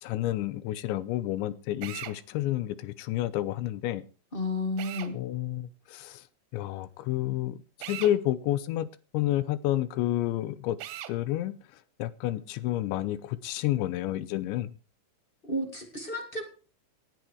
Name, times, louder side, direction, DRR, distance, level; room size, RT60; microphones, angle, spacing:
voice 1, 0.0-4.0 5.1-6.2 6.5-8.9 9.1-10.8 11.1-11.6 12.0-14.7, left 14 dB, 85° left, 17 dB, 3.2 m, -30 dB
Drill, 1.8-2.2 4.8-5.1 7.8-8.2 10.8-11.2, right 13 dB, 80° right, 3.1 m, -39 dB
voice 2, 4.3-5.2 15.4-16.5, left 1 dB, 35° left, 5 dB, 0.8 m, -32 dB
18.0 x 10.5 x 4.7 m, 0.34 s
omnidirectional pair, 5.1 m